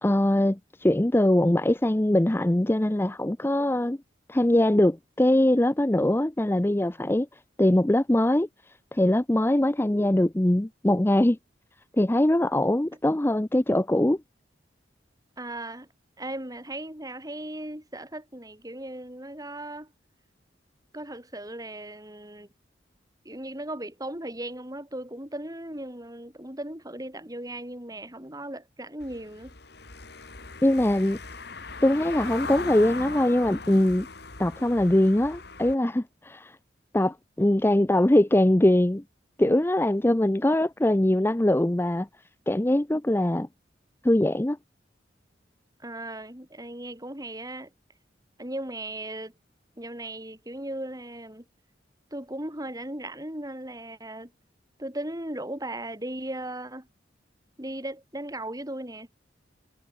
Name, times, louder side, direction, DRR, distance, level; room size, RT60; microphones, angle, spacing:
voice 1, 0.0-4.0 4.3-7.3 7.6-8.5 8.9-11.4 11.9-14.2 30.6-31.2 31.8-34.1 34.4-36.6 36.9-39.0 39.4-42.1 42.5-43.5 44.0-44.6, left 1 dB, 10° left, 0.6 m, -22 dB
voice 2, 15.4-15.9 16.2-19.9 20.9-22.5 23.2-29.5 45.8-47.7 48.4-49.3 49.8-51.4 52.1-54.3 54.8-56.9 57.6-59.1, right 1 dB, 20° right, 6.6 m, -37 dB
Car passing by / Engine, 29.0-35.8, left 4 dB, 60° left, 2.8 m, -39 dB
head